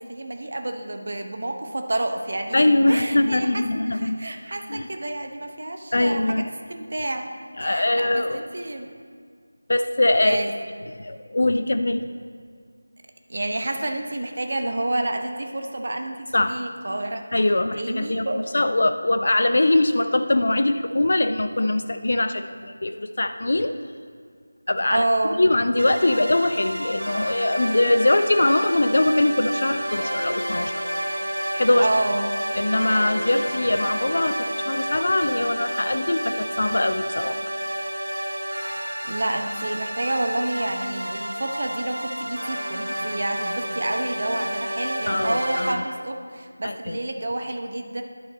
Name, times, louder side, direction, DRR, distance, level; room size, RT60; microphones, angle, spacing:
voice 1, 0.0-3.6 3.9-6.4 6.7-7.3 7.6-8.9 10.2-10.5 13.3-17.3 17.8-18.5 24.9-25.4 31.8-32.3 39.0-48.0, right 1 dB, 45° right, 5 dB, 0.8 m, -29 dB
voice 2, 2.5-4.2 4.7-4.9 5.9-6.5 7.6-8.4 9.7-10.4 10.9-12.0 16.3-16.6 17.3-23.7 24.7-25.0 25.4-30.9 31.5-31.9 32.5-37.4 45.1-45.8 46.6-47.0, left 2 dB, 50° left, 9 dB, 0.4 m, -22 dB
sound 1, 25.8-45.7, equal, 85° right, 1.0 m, -30 dB
11.0 x 5.9 x 4.2 m, 2.1 s
figure-of-eight pair, 165°, 0 cm